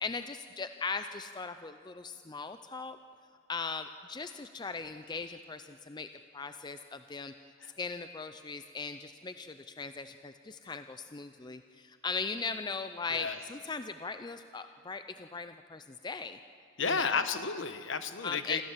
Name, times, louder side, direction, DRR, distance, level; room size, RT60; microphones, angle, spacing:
voice 1, 0.0-3.0 3.5-6.1 6.3-7.3 7.8-16.4 16.8-17.2 18.2-18.6, left 4 dB, 20° left, 9 dB, 0.4 m, -39 dB
voice 2, 16.8-18.6, left 5 dB, 60° left, 9 dB, 1.1 m, -32 dB
26.5 x 15.0 x 7.4 m, 2.3 s
head